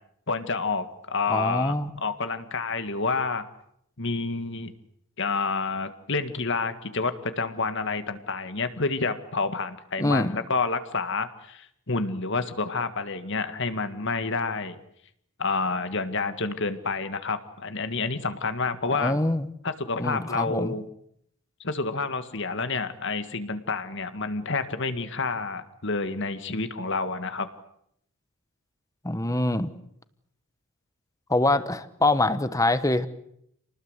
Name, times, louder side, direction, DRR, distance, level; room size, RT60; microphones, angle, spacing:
voice 1, 0.3-3.5 4.0-4.7 5.2-14.8 15.4-19.1 19.6-20.8 21.6-27.5, left 4 dB, 60° left, 10 dB, 1.9 m, -29 dB
voice 2, 1.3-1.9 10.0-10.3 18.9-19.5 20.0-20.7 29.0-29.7 31.3-33.1, left 2 dB, 15° left, 13 dB, 1.2 m, -24 dB
28.5 x 19.5 x 8.2 m, 0.74 s
head